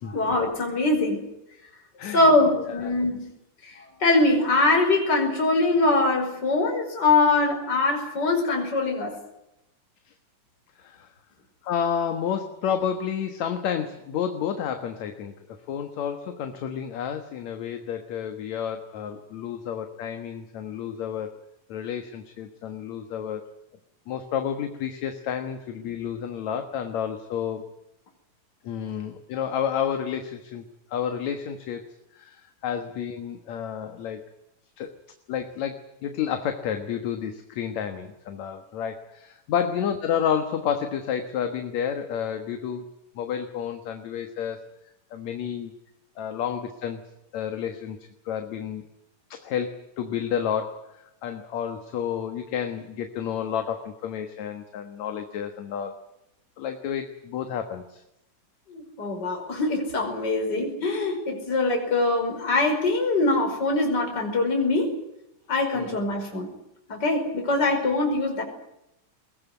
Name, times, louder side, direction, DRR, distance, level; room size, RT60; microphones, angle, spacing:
voice 1, 0.0-1.3 2.1-3.3 3.6-9.2 58.7-65.0 65.5-66.5 66.9-68.4, left 2 dB, 30° left, 2 dB, 5.8 m, -23 dB
voice 2, 2.0-3.0 10.8-11.1 11.6-21.3 21.7-23.4 24.1-27.7 28.6-31.9 32.2-34.2 34.8-34.9 35.3-42.9 43.2-44.6 45.1-45.7 46.2-47.0 47.3-48.0 48.3-48.8 49.3-56.0 56.6-58.0 65.8-66.0, left 8 dB, 65° left, 7 dB, 2.6 m, -30 dB
22.0 x 19.0 x 9.4 m, 0.86 s
omnidirectional pair, 3.7 m